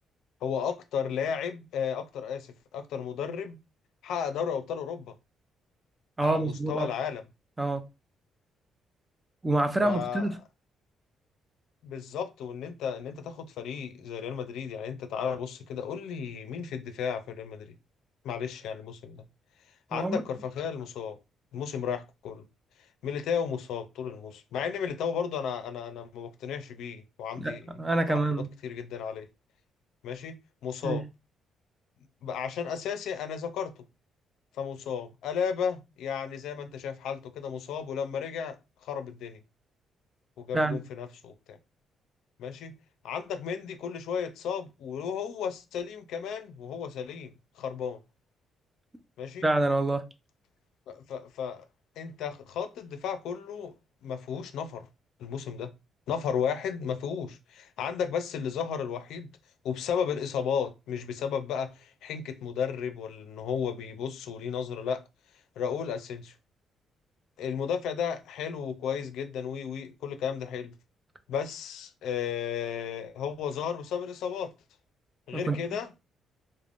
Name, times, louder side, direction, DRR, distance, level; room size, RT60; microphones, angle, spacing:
voice 1, 0.4-3.6 4.0-5.1 6.2-7.2 9.8-10.3 11.8-17.7 18.2-19.2 19.9-21.2 21.5-22.4 23.0-27.7 28.1-28.2 28.6-29.3 30.0-30.3 30.6-31.0 32.2-33.7 34.6-38.6 38.8-39.4 40.4-41.6 42.4-42.7 43.0-48.0 49.2-49.5 50.9-51.6 52.0-53.7 54.0-54.9 55.2-55.7 56.1-59.3 59.6-65.0 65.6-66.3 67.4-70.7 71.3-74.5 75.3-76.0, left 7 dB, 80° left, 0.4 m, -34 dB
voice 2, 6.2-6.9 7.6-7.9 9.4-10.4 19.9-20.2 27.4-28.5 30.8-31.0 40.5-40.8 49.4-50.1 75.3-75.6, right 2 dB, 15° right, 0.5 m, -27 dB
3.2 x 2.1 x 2.5 m
cardioid pair, 90°, 0 cm